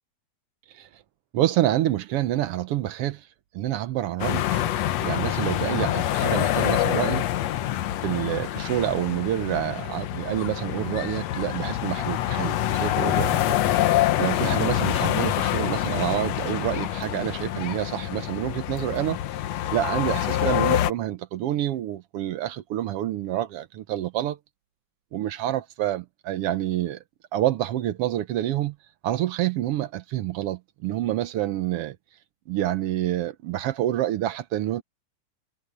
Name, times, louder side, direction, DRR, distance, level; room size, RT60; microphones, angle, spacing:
voice 1, 1.3-3.2 3.5-4.7 5.0-7.2 8.0-13.6 14.2-19.2 19.7-24.4 25.1-27.0 27.3-28.7 29.0-32.0 32.5-34.8, right 13 dB, 70° right, 1.5 m, -27 dB
sound 1, 4.2-20.9, left 13 dB, 70° left, 2.0 m, -26 dB
omnidirectional pair, 3.3 m